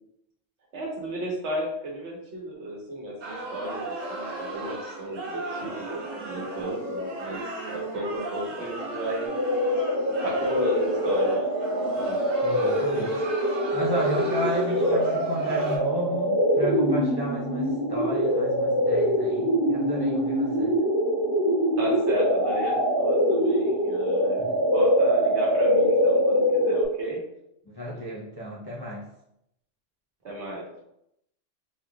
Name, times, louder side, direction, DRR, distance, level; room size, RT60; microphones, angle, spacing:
voice 1, 0.7-7.4 7.7-9.3 10.1-11.4 11.9-12.2 21.8-27.2 30.2-30.8, right 1 dB, 65° right, -3 dB, 1.4 m, -33 dB
sound 1, 3.2-15.8, right 2 dB, 85° right, 1.5 m, -35 dB
sound 2, 9.3-26.9, equal, 25° right, 1.7 m, -24 dB
voice 2, 12.4-13.3 13.7-20.8 24.4-24.6 27.7-29.0, equal, 35° left, -5 dB, 0.4 m, -32 dB
4.1 x 3.6 x 2.3 m, 0.79 s
omnidirectional pair, 1.3 m